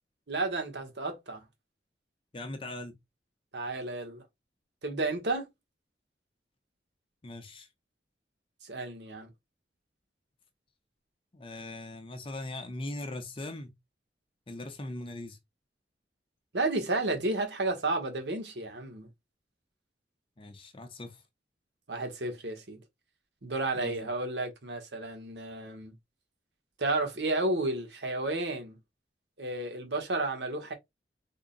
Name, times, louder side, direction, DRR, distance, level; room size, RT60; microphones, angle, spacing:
voice 1, 0.3-1.4 3.5-4.2 4.8-5.5 8.6-9.3 16.5-19.1 21.9-22.8 23.4-26.0 26.8-28.8 29.4-30.7, right 2 dB, 80° right, 1.1 m, -32 dB
voice 2, 2.3-2.9 7.2-7.7 11.3-13.7 14.5-15.4 20.4-21.2 23.7-24.1, left 2 dB, 30° left, 0.6 m, -40 dB
3.6 x 2.1 x 3.8 m
head